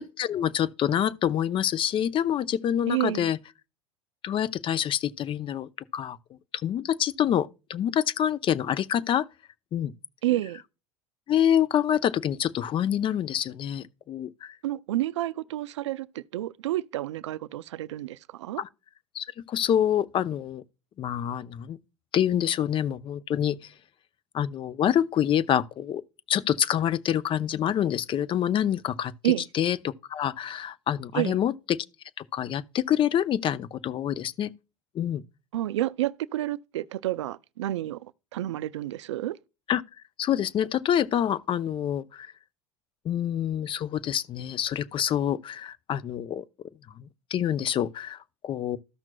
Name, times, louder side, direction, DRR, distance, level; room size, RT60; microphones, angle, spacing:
voice 1, 0.0-3.4 4.2-6.2 6.6-9.3 9.7-9.9 11.3-14.6 18.6-18.7 19.1-20.6 21.0-21.8 22.1-23.6 24.3-26.0 26.3-31.9 32.3-34.5 34.9-35.2 39.7-39.8 40.2-42.3 43.0-46.4 47.0-47.1 47.3-48.8, left 10 dB, 35° left, 0.5 m, -26 dB
voice 2, 2.9-3.3 10.2-10.6 14.6-18.6 29.2-29.5 31.1-31.4 35.5-39.4, right 15 dB, 85° right, 0.4 m, -29 dB
14.0 x 5.9 x 2.2 m
hypercardioid pair, 85°, 15 cm